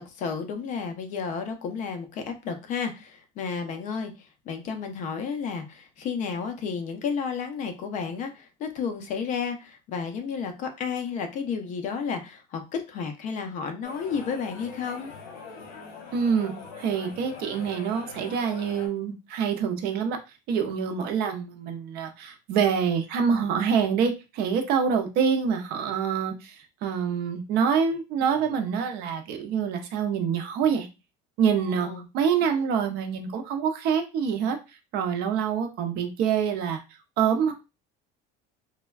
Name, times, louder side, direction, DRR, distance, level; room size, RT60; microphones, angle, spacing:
voice 1, 0.0-4.1 4.5-15.1 31.6-32.1, left 6 dB, 40° left, 6 dB, 0.4 m, -32 dB
sound 1, 13.8-18.9, left 4 dB, 70° left, 1.0 m, -43 dB
voice 2, 16.1-20.2 20.5-30.9 31.4-34.6 34.9-36.8 37.2-37.5, right 7 dB, 50° right, 6 dB, 0.5 m, -26 dB
3.3 x 2.1 x 2.3 m, 0.27 s
cardioid pair, 165°, 20 cm